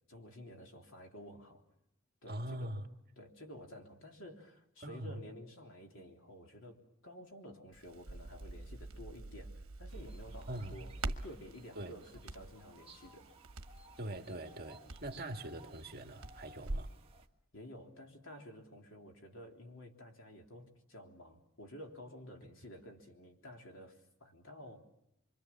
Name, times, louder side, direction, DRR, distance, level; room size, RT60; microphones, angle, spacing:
voice 1, 0.1-1.6 2.2-2.8 3.2-13.3 17.5-24.8, equal, 65° left, 3.5 m, -52 dB
voice 2, 2.3-2.9 4.8-5.2 10.5-10.8 11.8-11.9 14.0-16.9, right 1 dB, 45° right, 1.7 m, -43 dB
Crackle, 7.7-17.0, right 2 dB, 75° right, 1.2 m, -45 dB
sound 1, 9.9-17.3, right 2 dB, 25° right, 1.6 m, -59 dB
25.5 x 25.0 x 7.2 m
head